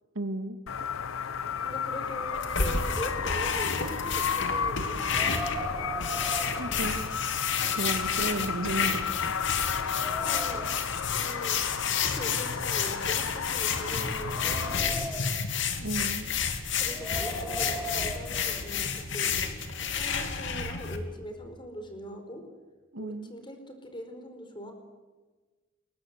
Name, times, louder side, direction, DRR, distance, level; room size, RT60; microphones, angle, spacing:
voice 1, 0.1-0.6 6.6-7.0 7.7-9.1 15.8-16.3 22.9-23.3, right 1 dB, 75° right, 8 dB, 2.1 m, -33 dB
sound 1, 0.7-14.8, left 6 dB, 75° left, 0.8 m, -33 dB
voice 2, 1.6-5.3 10.2-10.6 11.1-11.6 12.0-15.0 16.8-19.4 19.9-22.4 23.0-24.7, equal, 25° left, 5 dB, 4.7 m, -41 dB
sound 2, 2.3-21.0, left 6 dB, 60° left, 2.8 m, -31 dB
Wind, 5.0-7.6 8.0-8.1 8.7-8.8 9.3-10.9 11.8-13.3 13.9-15.5 16.8-18.9, equal, 5° right, 4.8 m, -39 dB
29.0 x 22.5 x 8.2 m, 1.3 s
head